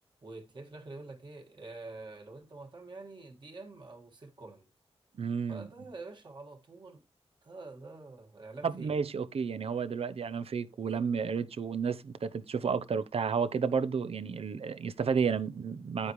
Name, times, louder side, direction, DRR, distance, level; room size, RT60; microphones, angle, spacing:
voice 1, 0.2-4.7 5.5-7.0 7.4-8.9 16.0-16.1, right 3 dB, 45° right, 1.9 m, -46 dB
voice 2, 5.2-5.7 8.6-16.1, right 6 dB, 65° right, 0.7 m, -31 dB
9.7 x 8.6 x 3.1 m
wide cardioid pair, 145°, 11 cm